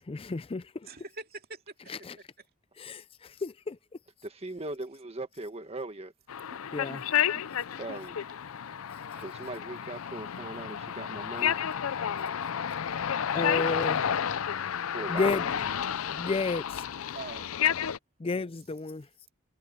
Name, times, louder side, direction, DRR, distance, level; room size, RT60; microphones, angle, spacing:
voice 1, 0.0-0.9 1.9-2.2 2.8-3.8 6.7-7.0 13.2-14.1 15.1-15.5 16.1-16.9 18.2-19.1, left 3 dB, 25° left, 0.4 m, -32 dB
voice 2, 0.9-1.6 2.1-2.2 6.9-7.0 7.3-7.8 9.1-9.6 17.1-17.7, right 3 dB, 45° right, 2.3 m, -45 dB
voice 3, 4.2-6.1 7.8-8.2 9.2-11.5 14.9-15.5, right 2 dB, 30° right, 1.6 m, -39 dB
sound 1, 6.3-18.0, left 8 dB, 75° left, 0.5 m, -31 dB
head